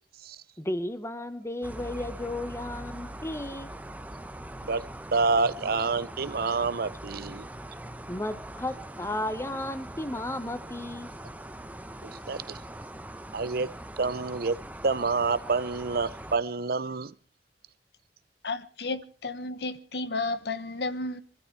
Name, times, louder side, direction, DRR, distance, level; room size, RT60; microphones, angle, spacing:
voice 1, 0.6-3.7 8.1-11.1, left 1 dB, 15° left, 1.2 m, -34 dB
sound 1, 1.6-16.4, right 1 dB, 10° right, 0.9 m, -42 dB
voice 2, 5.1-7.4 12.0-12.6 13.3-13.7 14.0-17.1, right 4 dB, 60° right, 0.7 m, -28 dB
voice 3, 18.4-21.2, left 3 dB, 65° left, 1.1 m, -32 dB
24.0 x 12.5 x 4.7 m
head